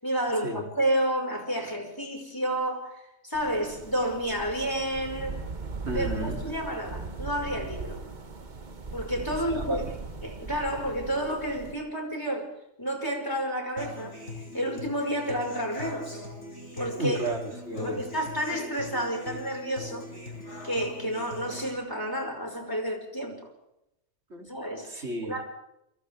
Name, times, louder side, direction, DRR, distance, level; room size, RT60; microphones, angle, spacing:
voice 1, 0.0-5.4 5.9-8.0 8.9-9.9 10.2-12.5 12.8-14.2 14.5-16.2 16.8-17.2 17.8-20.1 20.6-23.4 24.5-25.4, right 1 dB, 15° left, 1 dB, 5.5 m, -30 dB
sound 1, 3.3-11.7, right 3 dB, 40° right, 1.4 m, -39 dB
voice 2, 5.9-6.4 9.5-9.6 17.0-18.1 24.3-24.5 24.8-25.4, right 2 dB, 65° right, 1 dB, 3.7 m, -32 dB
Human voice / Acoustic guitar, 13.8-21.8, left 2 dB, 75° left, 5.5 m, -41 dB
28.5 x 26.5 x 3.7 m, 0.83 s
omnidirectional pair, 1.2 m